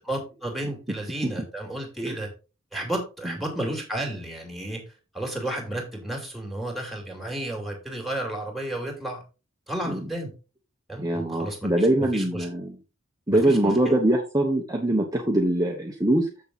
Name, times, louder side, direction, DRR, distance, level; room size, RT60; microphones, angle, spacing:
voice 1, 0.0-2.3 2.7-4.8 5.1-9.2 9.7-10.3 10.9-12.5 13.3-14.0, right 1 dB, ahead, 1 dB, 2.9 m, -32 dB
voice 2, 11.0-12.8 13.3-16.3, right 1 dB, 15° right, 0 dB, 1.1 m, -23 dB
7.5 x 6.7 x 4.1 m, 0.30 s
head